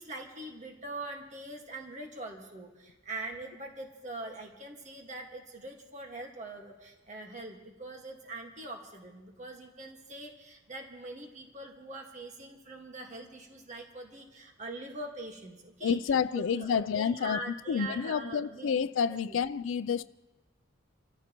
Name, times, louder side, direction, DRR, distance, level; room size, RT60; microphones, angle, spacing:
voice 1, 0.0-18.8 19.1-19.4, right 2 dB, 40° right, 1.6 m, -43 dB
voice 2, 15.8-17.4 17.7-20.0, left 7 dB, 90° left, 0.4 m, -29 dB
29.0 x 14.0 x 3.0 m
head